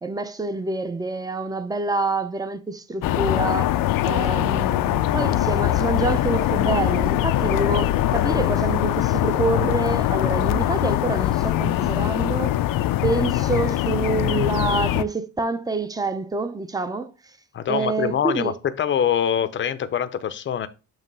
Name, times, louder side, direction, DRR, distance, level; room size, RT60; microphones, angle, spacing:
voice 1, 0.0-3.7 4.0-12.5 13.0-17.1 17.7-18.5, right 3 dB, 10° right, 0.5 m, -27 dB
sound 1, 3.0-15.0, left 13 dB, 85° left, 0.5 m, -22 dB
voice 2, 17.5-20.7, left 9 dB, 35° left, 0.6 m, -24 dB
7.2 x 3.1 x 5.4 m
cardioid pair, 140°, 33 cm